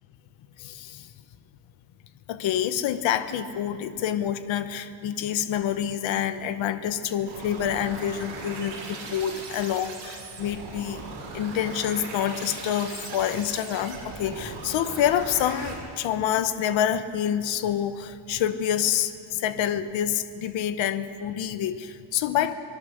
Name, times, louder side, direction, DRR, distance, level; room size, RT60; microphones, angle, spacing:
voice 1, 0.6-1.1 2.3-11.0 11.3-22.5, left 10 dB, 70° left, 11 dB, 1.1 m, -27 dB
sound 1, 7.2-15.7, right 4 dB, 70° right, 6.4 m, -39 dB
25.5 x 19.0 x 6.6 m, 2.4 s
cardioid pair, 175°, 48 cm